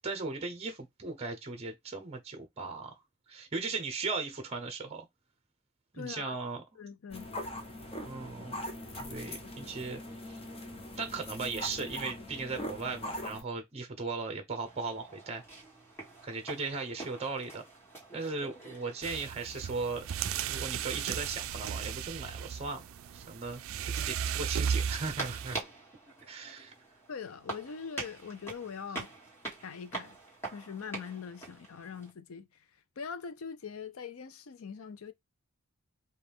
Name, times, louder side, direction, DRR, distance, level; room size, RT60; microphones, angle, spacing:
voice 1, 0.0-3.0 3.3-5.1 5.9-6.6 8.0-8.7 8.9-10.0 11.0-15.4 16.2-17.6 18.1-20.0 20.5-22.8 23.1-23.6 23.9-25.6 26.3-26.7, right 4 dB, 30° right, 0.8 m, -37 dB
voice 2, 5.9-6.4 6.8-7.3 27.1-29.1 29.6-30.2 30.5-32.6 33.0-35.1, left 6 dB, 80° left, 0.5 m, -42 dB
sound 1, 7.1-13.4, left 1 dB, 25° left, 0.8 m, -41 dB
sound 2, 14.7-32.1, right 3 dB, 10° left, 1.6 m, -46 dB
sound 3, 19.0-25.6, right 8 dB, 70° right, 0.3 m, -35 dB
4.9 x 2.4 x 3.5 m
head